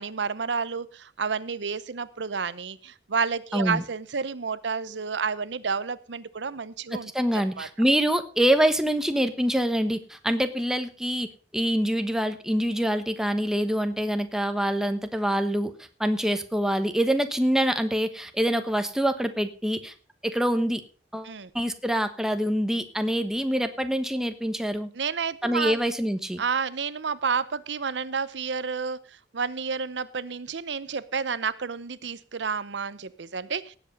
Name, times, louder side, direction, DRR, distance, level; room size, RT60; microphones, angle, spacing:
voice 1, 0.0-7.7 21.2-21.5 24.9-25.8 26.4-33.8, right 5 dB, 80° right, 16 dB, 0.8 m, -30 dB
voice 2, 3.5-3.8 7.1-11.3 11.5-15.7 16.0-19.9 20.2-20.8 21.1-24.9 25.4-26.4, equal, 5° right, 8 dB, 1.1 m, -25 dB
17.5 x 8.1 x 5.3 m, 0.38 s
head